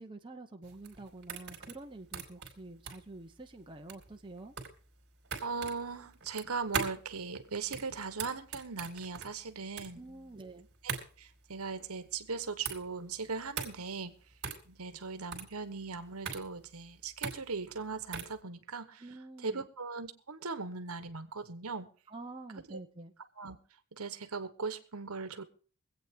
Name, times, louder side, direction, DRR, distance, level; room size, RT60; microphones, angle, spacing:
voice 1, 0.0-4.5 9.9-10.7 19.0-19.7 22.1-23.1, right 2 dB, 20° right, 3 dB, 1.0 m, -47 dB
sound 1, 0.6-18.4, right 6 dB, 50° right, 3.0 m, -41 dB
voice 2, 5.4-10.3 10.8-14.1 14.7-19.0 19.4-21.9 22.7-22.8 23.4-23.6 23.9-25.4, right 4 dB, 80° right, 10 dB, 1.2 m, -39 dB
23.5 x 8.5 x 3.7 m, 0.39 s
head